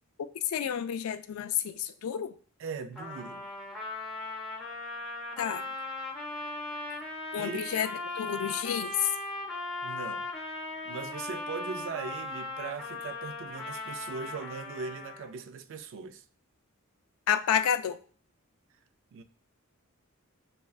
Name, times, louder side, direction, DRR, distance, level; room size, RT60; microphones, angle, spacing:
voice 1, 0.5-2.3 5.4-5.7 7.3-7.9 8.2-9.0 17.3-18.0, left 8 dB, 75° left, 0.3 m, -30 dB
voice 2, 2.6-3.5 7.4-7.6 9.8-10.3 10.8-16.2 19.1-19.2, right 5 dB, 60° right, 0.3 m, -39 dB
Trumpet, 3.0-15.4, left 2 dB, ahead, 0.7 m, -38 dB
6.1 x 2.2 x 2.3 m
head